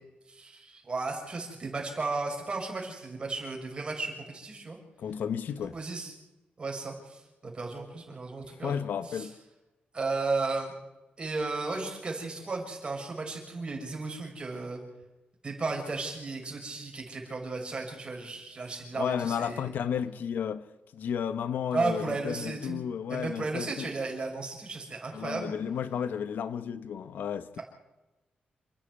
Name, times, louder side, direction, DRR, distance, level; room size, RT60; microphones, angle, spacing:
voice 1, 0.3-4.8 5.7-6.1 6.6-8.8 9.1-9.3 9.9-10.7 11.2-14.8 15.4-19.7 21.7-22.8 23.1-25.5, right 3 dB, 30° right, 6.6 m, -34 dB
voice 2, 5.0-5.8 8.6-9.3 18.9-20.6 20.9-23.9 25.1-27.6, left 8 dB, 80° left, 1.0 m, -33 dB
29.0 x 10.0 x 9.7 m
wide cardioid pair, 135°, 3 cm